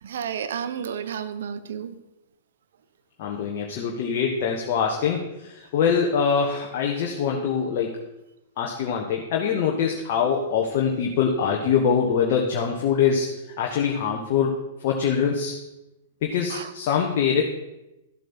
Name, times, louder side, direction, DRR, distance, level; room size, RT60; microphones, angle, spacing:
voice 1, 0.0-2.0 16.5-16.7, right 8 dB, 60° right, 12 dB, 0.8 m, -31 dB
voice 2, 3.2-8.0 8.6-13.3 13.6-15.5 16.2-17.4, left 6 dB, 45° left, 0 dB, 1.3 m, -24 dB
13.0 x 7.9 x 4.4 m, 0.95 s
figure-of-eight pair, 105°, 0 cm